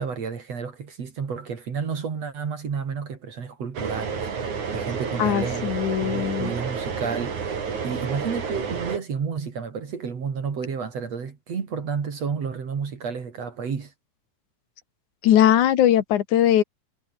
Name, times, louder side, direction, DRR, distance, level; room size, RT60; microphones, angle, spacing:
voice 1, 0.0-5.7 6.0-13.9, right 6 dB, 60° right, 4.0 m, -31 dB
sound 1, 3.8-9.0, right 6 dB, 80° right, 5.2 m, -30 dB
voice 2, 5.2-6.5 15.2-16.6, left 11 dB, 90° left, 3.0 m, -20 dB
omnidirectional pair, 3.4 m